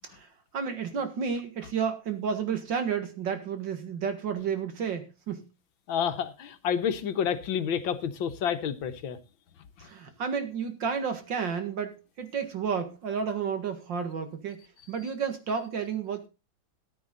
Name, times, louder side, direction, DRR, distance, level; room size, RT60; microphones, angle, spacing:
voice 1, 0.5-5.5 9.8-16.3, right 6 dB, 65° right, 2.4 m, -31 dB
voice 2, 5.9-9.2, left 8 dB, 80° left, 1.8 m, -29 dB
14.0 x 9.4 x 3.9 m
omnidirectional pair, 2.2 m